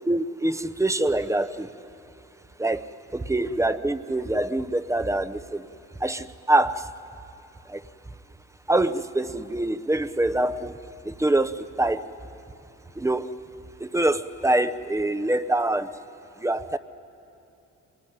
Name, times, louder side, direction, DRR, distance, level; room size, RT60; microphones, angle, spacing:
voice 1, 0.1-1.7 2.6-2.8 3.3-5.6 6.0-6.8 7.7-7.8 8.7-10.7 11.1-12.0 13.0-13.3 13.8-15.9 16.4-16.8, right 1 dB, 10° right, 12 dB, 0.7 m, -24 dB
23.0 x 20.0 x 10.0 m, 2.7 s
cardioid pair, 90°, 30 cm